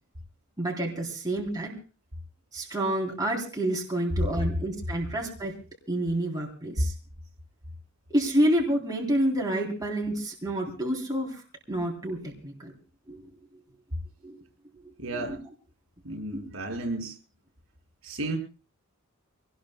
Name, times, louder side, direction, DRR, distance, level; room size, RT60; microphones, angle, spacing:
voice 1, 0.6-1.7 2.5-5.5 5.9-6.9 8.1-11.4 11.7-12.7 13.1-13.2 14.2-14.4 15.1-15.4, right 1 dB, 15° right, 0 dB, 3.3 m, -28 dB
voice 2, 15.0-15.4 16.0-17.2 18.0-18.4, right 2 dB, 65° right, 3 dB, 5.6 m, -33 dB
25.5 x 19.0 x 2.2 m, 0.35 s
head